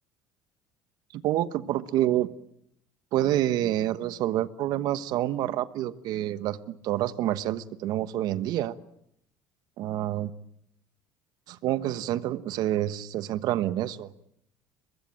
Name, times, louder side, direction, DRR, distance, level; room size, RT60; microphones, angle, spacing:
voice 1, 1.1-2.3 3.1-8.7 9.8-10.3 11.5-14.1, right 13 dB, 65° right, 14 dB, 1.2 m, -28 dB
23.5 x 21.5 x 8.8 m, 0.74 s
supercardioid pair, 100°, 7 cm